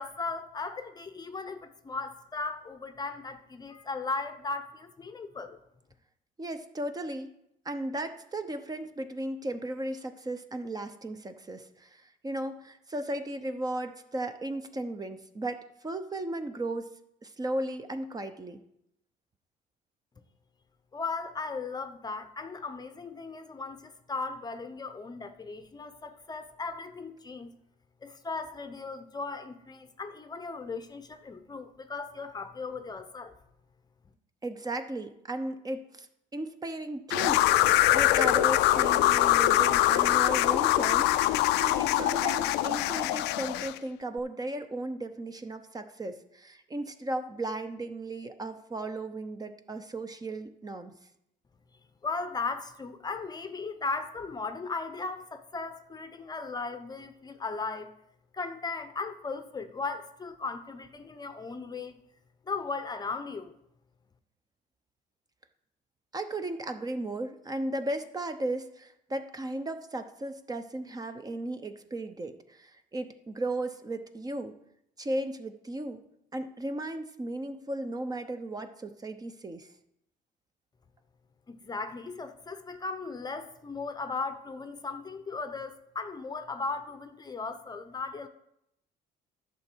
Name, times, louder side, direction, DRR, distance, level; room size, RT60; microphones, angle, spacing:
voice 1, 0.0-5.6 20.9-27.5 28.0-33.3 52.0-57.9 58.3-62.0 62.5-63.5 81.5-88.3, left 4 dB, 25° left, 0.7 m, -37 dB
voice 2, 6.4-7.3 7.6-16.9 17.2-18.6 34.4-36.1 36.3-50.9 66.1-74.5 75.0-76.0 76.3-79.7, right 1 dB, 20° right, 0.8 m, -35 dB
sound 1, 37.1-43.8, left 15 dB, 90° left, 0.4 m, -23 dB
11.0 x 6.8 x 4.6 m
cardioid pair, 110°, 17 cm